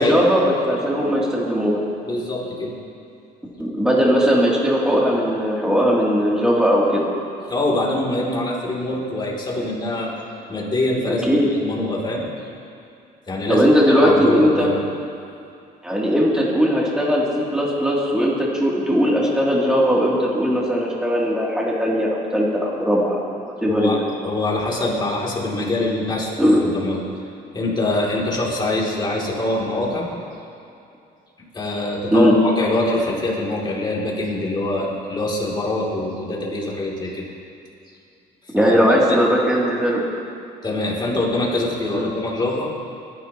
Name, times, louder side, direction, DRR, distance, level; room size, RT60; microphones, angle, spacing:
voice 1, 0.0-1.8 3.6-7.1 11.0-11.5 13.5-14.7 15.8-23.9 26.4-26.6 32.1-32.3 38.5-40.2 41.9-42.1, equal, 5° right, -5 dB, 2.8 m, -19 dB
voice 2, 2.0-2.7 7.5-10.1 10.5-12.2 13.3-14.7 23.7-24.0 24.2-27.0 27.5-30.1 31.5-37.2 38.6-39.2 40.6-42.7, left 2 dB, 25° left, -3 dB, 2.9 m, -24 dB
22.0 x 10.5 x 3.0 m, 2.5 s
cardioid pair, 110°, 17 cm